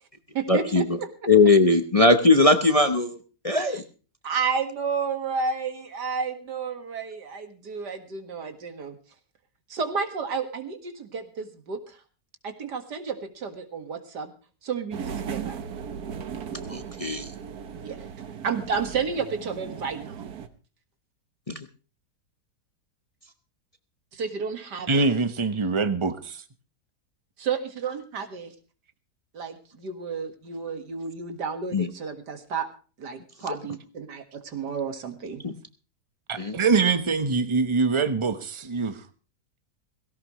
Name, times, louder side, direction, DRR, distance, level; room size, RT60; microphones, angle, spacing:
voice 1, 0.5-1.0 1.2-3.8 16.7-17.4 21.5-21.7 23.2-23.3 31.7-31.9 33.3-33.6 35.4-35.6 36.3-36.6, left 3 dB, 25° left, 0.9 m, -20 dB
voice 2, 4.2-9.0 9.7-12.0 12.4-14.3 14.6-15.6 17.8-18.0 18.4-20.2 24.1-25.1 27.4-28.5 29.3-32.7 33.0-35.4, right 5 dB, 85° right, 2.4 m, -31 dB
sound 1, 14.9-20.5, right 7 dB, 70° right, 1.7 m, -37 dB
voice 3, 24.9-26.4 36.3-39.0, right 4 dB, 20° right, 1.0 m, -24 dB
17.5 x 17.0 x 3.1 m
omnidirectional pair, 1.7 m